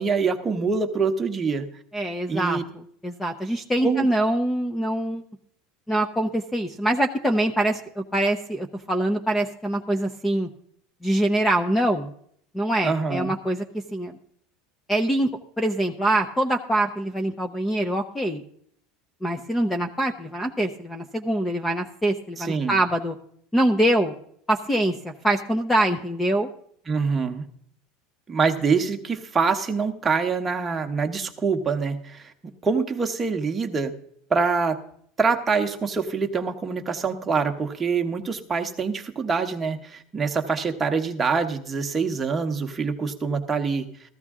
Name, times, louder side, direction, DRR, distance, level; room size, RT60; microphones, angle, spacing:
voice 1, 0.0-1.7 2.3-2.6 3.8-4.1 12.8-13.4 22.4-22.8 26.9-27.5 28.3-32.3 32.6-33.9 34.3-34.8 35.2-43.9, right 5 dB, 15° right, 4 dB, 1.0 m, -25 dB
voice 2, 1.9-5.2 5.9-10.5 11.0-12.1 12.5-13.6 13.9-14.2 14.9-15.3 15.6-18.4 19.2-23.2 23.5-24.1 24.5-26.5, right 1 dB, 5° left, 8 dB, 0.6 m, -24 dB
14.5 x 14.5 x 3.6 m, 0.65 s
cardioid pair, 165°, 0 cm